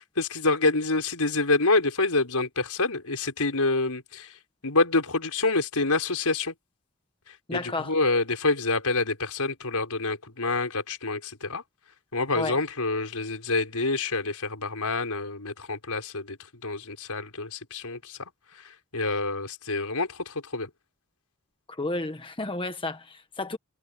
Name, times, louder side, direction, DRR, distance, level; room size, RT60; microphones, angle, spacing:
voice 1, 0.2-4.3 4.6-6.5 7.3-11.6 12.1-16.4 16.6-18.2 18.5-20.7, left 3 dB, 90° left, 5.0 m, -27 dB
voice 2, 7.5-7.9 12.3-12.6 21.7-23.6, left 2 dB, 25° left, 1.4 m, -32 dB
head